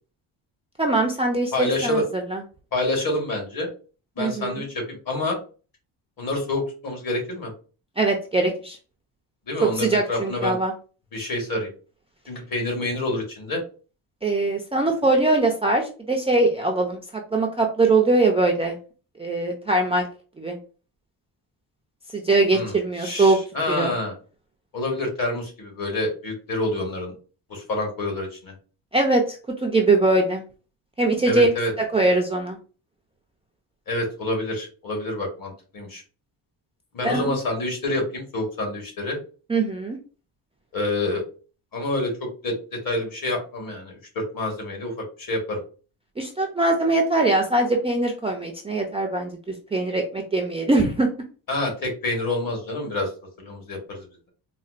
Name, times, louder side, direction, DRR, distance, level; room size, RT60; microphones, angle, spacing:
voice 1, 0.8-2.4 4.2-4.6 8.0-8.8 9.6-10.7 14.2-17.0 17.3-18.8 19.2-20.1 20.4-20.6 22.1-23.4 23.7-23.9 28.9-29.4 29.6-30.4 31.0-31.5 31.9-32.6 37.0-37.3 39.5-40.0 46.2-51.1, right 2 dB, 15° right, 0 dB, 0.3 m, -22 dB
voice 2, 1.5-2.0 2.7-3.7 4.2-5.4 6.2-7.5 9.5-10.6 11.1-11.7 12.3-13.6 22.5-24.1 24.7-27.1 27.5-28.5 31.2-31.7 33.9-36.0 36.9-39.2 40.7-41.2 41.7-42.5 42.8-45.6 51.5-53.1 53.4-54.0, left 2 dB, 50° left, 1 dB, 1.5 m, -27 dB
4.0 x 2.1 x 2.4 m, 0.36 s
cardioid pair, 125°, 43 cm